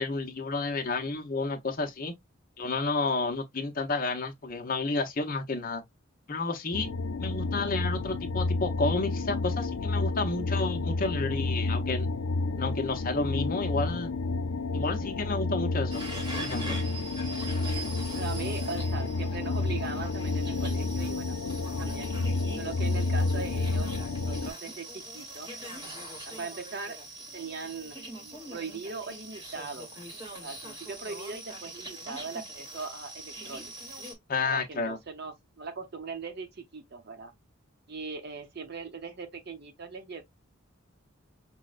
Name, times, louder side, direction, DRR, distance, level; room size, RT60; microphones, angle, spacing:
voice 1, 0.0-2.1 2.6-5.8 6.3-6.9 7.2-12.1 12.6-14.1 14.7-16.0 16.4-16.8 34.3-35.0, left 3 dB, 45° left, 0.7 m, -31 dB
sound 1, 6.7-24.5, left 3 dB, 90° left, 0.6 m, -30 dB
sound 2, 15.9-34.1, right 2 dB, 20° right, 1.0 m, -42 dB
voice 2, 18.1-22.1 22.6-25.5 26.2-27.0 27.3-29.9 30.4-33.7 34.4-37.3 37.9-40.2, right 4 dB, 50° right, 0.7 m, -40 dB
5.3 x 2.1 x 2.4 m
head